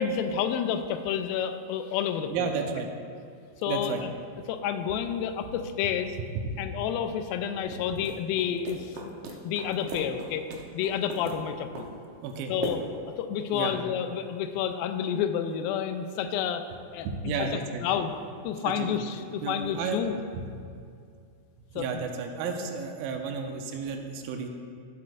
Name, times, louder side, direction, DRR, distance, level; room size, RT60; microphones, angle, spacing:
voice 1, 0.0-2.5 3.6-4.1 4.5-6.2 6.6-9.1 9.4-10.5 10.7-11.9 12.5-12.8 13.2-16.7 16.9-18.2 18.4-20.2 21.8-22.0 22.6-22.7, left 8 dB, 90° left, 8 dB, 2.4 m, -30 dB
voice 2, 2.3-2.9 3.7-4.0 6.4-6.6 12.2-12.5 13.5-13.8 17.0-17.8 18.8-19.0 19.4-20.1 20.3-20.4 21.7-24.5, right 5 dB, 85° right, 4 dB, 2.5 m, -32 dB
sound 1, 7.7-13.2, right 3 dB, 70° right, 2.1 m, -40 dB
14.5 x 7.6 x 2.5 m, 2.3 s
omnidirectional pair, 4.1 m